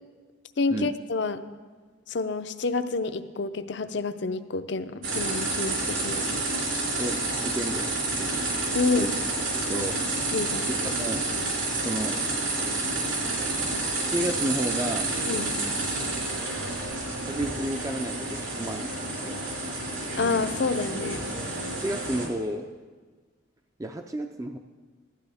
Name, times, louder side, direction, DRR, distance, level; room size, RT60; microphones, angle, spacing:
voice 1, 0.6-1.4 2.1-6.3 8.7-9.1 10.3-10.7 15.3-15.6 20.2-21.2, left 3 dB, 60° left, 11 dB, 0.5 m, -28 dB
sound 1, 5.0-22.3, right 2 dB, 75° right, 4.1 m, -29 dB
voice 2, 7.4-7.9 8.2-8.5 9.0-9.1 9.6-10.0 10.8-11.3 11.8-12.2 14.1-15.1 17.2-19.4 21.8-22.7 23.8-24.6, right 1 dB, 15° right, 5 dB, 0.4 m, -31 dB
16.0 x 12.0 x 3.5 m, 1.4 s
head